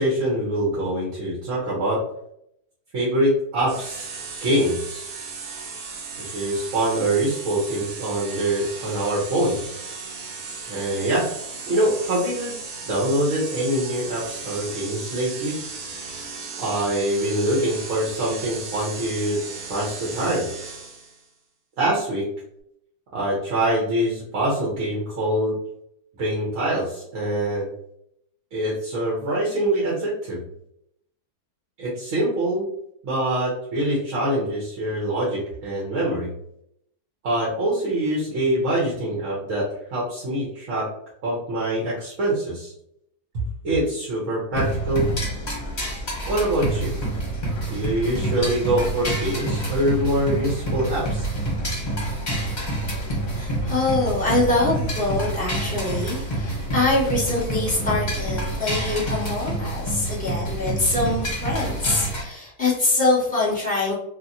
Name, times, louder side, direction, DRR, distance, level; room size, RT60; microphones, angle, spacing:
voice 1, 0.0-2.0 2.9-4.1 4.4-5.0 6.2-9.6 10.7-11.3 11.7-12.5 12.9-15.5 16.6-19.4 19.7-20.5 21.8-22.2 23.1-25.5 26.2-27.6 28.5-30.4 31.8-32.7 33.0-36.3 37.2-40.9 41.2-42.7 43.3-45.1 46.3-46.9 47.7-51.3, right 1 dB, 55° right, -5 dB, 1.1 m, -24 dB
sound 1, 3.7-21.2, right 4 dB, 80° right, 1.3 m, -36 dB
sound 2, 44.5-62.2, right 1 dB, 35° left, 0.9 m, -27 dB
voice 2, 53.3-63.9, left 2 dB, 5° left, -7 dB, 1.2 m, -24 dB
2.9 x 2.7 x 2.6 m, 0.74 s
omnidirectional pair, 1.7 m